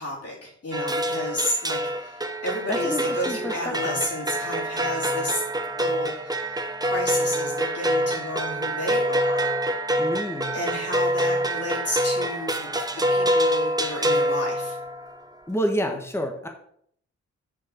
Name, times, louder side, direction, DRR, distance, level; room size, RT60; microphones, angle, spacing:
voice 1, 0.0-5.4 5.8-9.5 10.5-14.8, left 1 dB, 55° left, -3 dB, 3.8 m, -31 dB
sound 1, 0.7-15.2, right 1 dB, 15° right, 0.9 m, -26 dB
voice 2, 2.7-4.0 10.0-10.5 15.5-16.5, equal, 10° left, 3 dB, 1.3 m, -29 dB
6.6 x 6.2 x 4.4 m, 0.66 s
cardioid pair, 60°, 29 cm